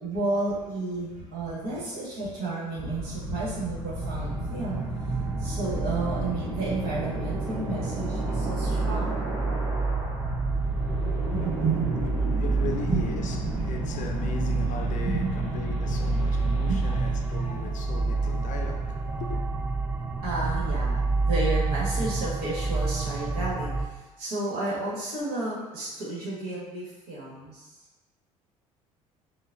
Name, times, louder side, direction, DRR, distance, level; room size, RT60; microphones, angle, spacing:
voice 1, 0.0-4.8 5.4-9.3 10.9-12.0 12.7-13.0 13.3-14.0 15.0-15.5 16.6-16.8 17.5-17.7 20.2-27.7, right 3 dB, 60° right, 1.5 m, -32 dB
sound 1, 2.7-20.9, equal, 75° right, 1.0 m, -34 dB
sound 2, 4.0-23.9, right 3 dB, 10° right, 0.3 m, -29 dB
voice 2, 12.4-19.5, left 5 dB, 45° left, 0.6 m, -38 dB
5.3 x 2.2 x 2.5 m
hypercardioid pair, 60°, 18 cm